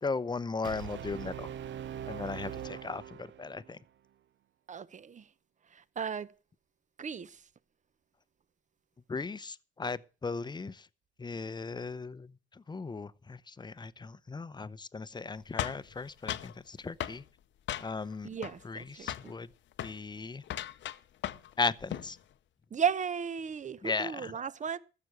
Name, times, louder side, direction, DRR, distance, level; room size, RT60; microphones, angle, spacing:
voice 1, 0.0-1.5 2.1-3.8 9.1-10.9 11.2-17.2 17.8-18.3 18.6-19.5 19.8-20.4 21.6-22.2 23.8-24.3, left 4 dB, 20° left, 0.7 m, -37 dB
Brass instrument, 0.6-3.7, right 10 dB, 70° right, 0.8 m, -42 dB
voice 2, 4.7-5.3 5.7-6.3 7.0-7.4 18.2-19.3 22.7-24.8, right 7 dB, 40° right, 0.9 m, -35 dB
sound 1, 15.6-16.5 17.0-17.2 17.7-18.1 18.4-18.8 19.1-19.3 19.7-20.0 20.4-21.5 21.8-22.1, left 12 dB, 70° left, 0.8 m, -37 dB
15.0 x 6.9 x 7.8 m
cardioid pair, 90°, 20 cm